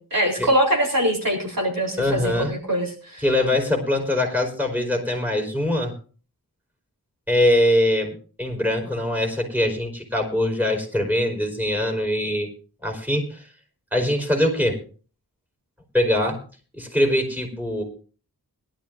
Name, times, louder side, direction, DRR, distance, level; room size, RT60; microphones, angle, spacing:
voice 1, 0.0-3.2, right 1 dB, 65° right, -1 dB, 4.0 m, -23 dB
voice 2, 2.0-2.5 3.2-5.9 7.3-12.5 12.8-13.5 13.9-14.8 15.9-16.4 16.7-17.8, left 1 dB, 5° right, 2 dB, 4.7 m, -22 dB
21.5 x 12.0 x 2.6 m, 0.39 s
wide cardioid pair, 45°, 36 cm